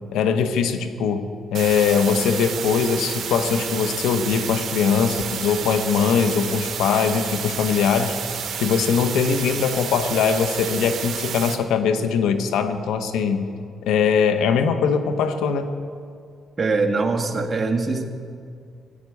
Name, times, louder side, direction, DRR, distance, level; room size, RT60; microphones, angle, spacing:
voice 1, 0.1-8.1 8.6-13.5 13.8-15.8, left 6 dB, 85° left, 8 dB, 1.1 m, -21 dB
sound 1, 1.5-11.5, right 7 dB, 60° right, 1.6 m, -30 dB
voice 2, 16.6-18.0, right 3 dB, 30° right, 1 dB, 1.8 m, -22 dB
15.5 x 10.5 x 8.4 m, 2.3 s
cardioid pair, 90°, 0 cm